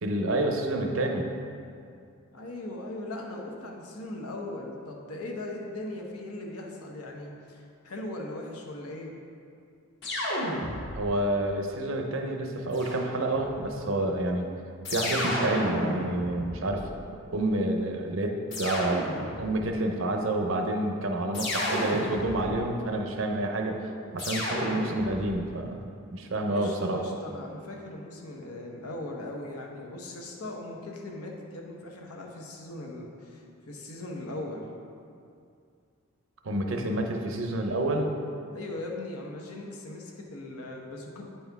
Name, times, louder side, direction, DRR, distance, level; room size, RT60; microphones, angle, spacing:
voice 1, 0.0-1.3 10.9-14.5 14.9-16.9 17.3-27.0 36.4-38.1, right 1 dB, 65° right, 3 dB, 0.6 m, -29 dB
voice 2, 2.3-9.1 26.3-34.6 38.5-41.3, left 2 dB, 85° left, 0 dB, 0.9 m, -39 dB
sound 1, 10.0-11.2 12.7-13.6 14.8-17.2 18.5-19.6 21.3-22.7 24.2-25.4, left 1 dB, 50° left, 1.1 m, -32 dB
9.3 x 4.4 x 3.5 m, 2.4 s
head